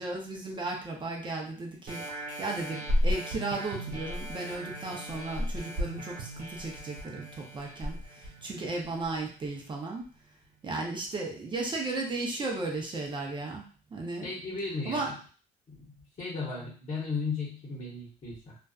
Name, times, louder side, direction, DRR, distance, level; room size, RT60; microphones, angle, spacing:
voice 1, 0.0-10.1 10.6-14.3 14.9-15.1, right 3 dB, 30° right, 0 dB, 0.6 m, -35 dB
sound 1, 1.9-9.1 9.6-9.7, equal, 55° right, 1.1 m, -34 dB
voice 2, 14.2-15.2 15.7-18.6, left 4 dB, 45° left, -5 dB, 0.9 m, -35 dB
2.4 x 2.3 x 2.3 m, 0.39 s
cardioid pair, 110°, 17 cm